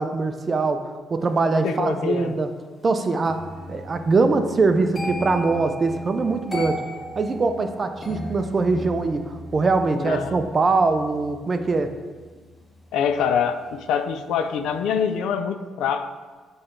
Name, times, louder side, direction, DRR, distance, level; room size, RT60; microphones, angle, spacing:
voice 1, 0.0-2.5 2.8-6.8 7.2-11.9, right 3 dB, 35° right, 8 dB, 0.6 m, -22 dB
voice 2, 1.6-2.3 9.9-10.4 12.9-16.1, left 7 dB, 85° left, 9 dB, 0.4 m, -25 dB
sound 1, 3.2-14.2 14.5-14.9, left 1 dB, 25° left, 1.8 m, -38 dB
7.6 x 3.3 x 5.8 m, 1.4 s
cardioid pair, 90°, 0 cm